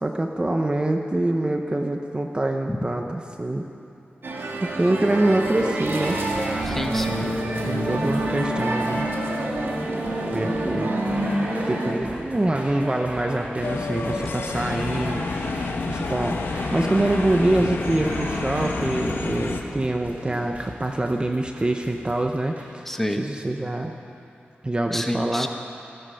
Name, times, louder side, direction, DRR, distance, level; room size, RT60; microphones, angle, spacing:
voice 1, 0.0-3.7 4.6-6.2 7.2-9.1 10.3-11.0 11.7-22.9 23.2-24.0 24.6-25.5, right 1 dB, 25° right, 4 dB, 0.8 m, -25 dB
sound 1, 4.2-11.9, right 1 dB, 80° right, 2.0 m, -27 dB
sound 2, 5.4-22.7, right 1 dB, 40° right, 2.5 m, -38 dB
voice 2, 6.6-7.3 22.9-23.2 24.9-25.5, equal, 5° left, 4 dB, 1.2 m, -28 dB
sound 3, 13.6-19.6, left 3 dB, 80° left, 1.1 m, -29 dB
16.0 x 14.5 x 5.7 m, 2.8 s
wide cardioid pair, 90°, 4 cm